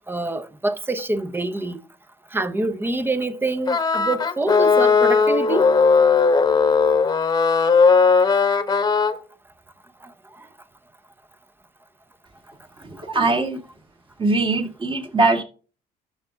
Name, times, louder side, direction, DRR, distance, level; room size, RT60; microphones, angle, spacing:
voice 1, 0.0-1.8 2.3-5.8, right 2 dB, 15° right, 0.7 m, -26 dB
sound 1, 3.7-9.1, left 5 dB, 25° left, 1.1 m, -17 dB
voice 2, 12.8-13.6 14.2-15.4, right 3 dB, 30° right, 2.1 m, -21 dB
12.5 x 5.8 x 3.4 m
cardioid pair, 110°, 17 cm